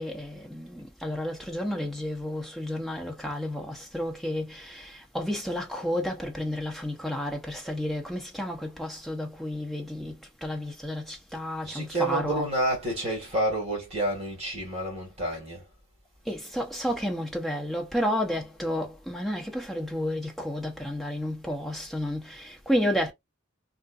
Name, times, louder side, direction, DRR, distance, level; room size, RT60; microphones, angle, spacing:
voice 1, 0.0-12.5 13.2-13.3 16.3-23.1, equal, ahead, 0.8 m, -31 dB
voice 2, 11.6-15.6, right 1 dB, 30° right, 1.8 m, -29 dB
3.7 x 2.5 x 2.3 m
head